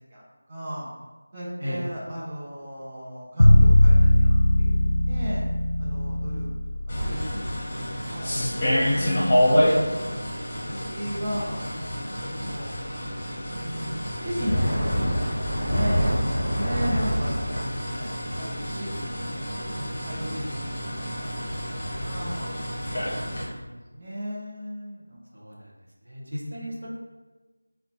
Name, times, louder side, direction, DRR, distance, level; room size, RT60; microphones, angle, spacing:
voice 1, 0.5-0.9 1.3-4.8 5.1-5.4 5.8-6.5 6.9-8.4 8.8-10.1 10.5-12.7 13.4-16.1 16.5-19.3 19.7-21.3 22.0-22.6 22.9-25.2, equal, 20° right, -7 dB, 0.4 m, -35 dB
sound 1, 3.4-7.5, left 1 dB, 60° left, 0.3 m, -18 dB
sound 2, 6.9-23.4, equal, 25° left, 0.7 m, -28 dB
sound 3, 14.2-17.6, equal, ahead, 0.9 m, -26 dB
voice 2, 25.3-25.7 26.0-26.9, equal, 75° right, -3 dB, 0.8 m, -35 dB
3.8 x 2.1 x 2.8 m, 1.2 s
figure-of-eight pair, 170°, 0 cm